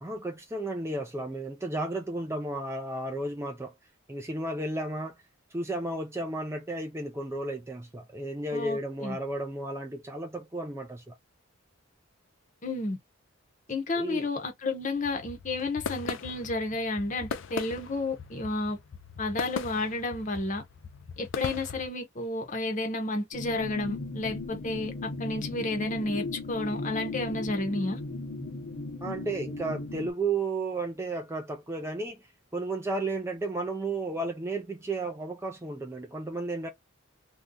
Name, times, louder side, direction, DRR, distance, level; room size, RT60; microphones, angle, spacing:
voice 1, 0.0-3.7 4.1-5.2 5.5-11.2 13.9-14.3 29.0-32.2 32.5-36.7, right 2 dB, 15° right, 0.4 m, -33 dB
voice 2, 8.5-9.2 12.6-13.0 13.7-18.8 19.2-20.6 21.2-28.0, left 2 dB, 35° left, 0.8 m, -31 dB
sound 1, 14.8-21.9, left 6 dB, 65° left, 0.4 m, -39 dB
sound 2, 23.3-30.1, left 3 dB, 80° left, 0.9 m, -37 dB
2.6 x 2.2 x 3.6 m
head